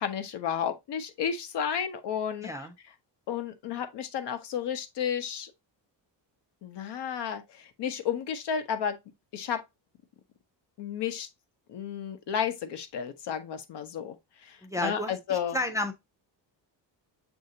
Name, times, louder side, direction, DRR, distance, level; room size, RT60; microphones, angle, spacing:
voice 1, 0.0-2.5 3.3-5.5 6.6-9.0 9.3-9.6 10.8-11.3 11.7-14.2 14.4-15.6, left 8 dB, 65° left, 0.8 m, -32 dB
voice 2, 2.4-2.7 14.6-15.9, left 1 dB, 5° right, 0.5 m, -32 dB
6.6 x 2.7 x 2.7 m
cardioid pair, 125°, 44 cm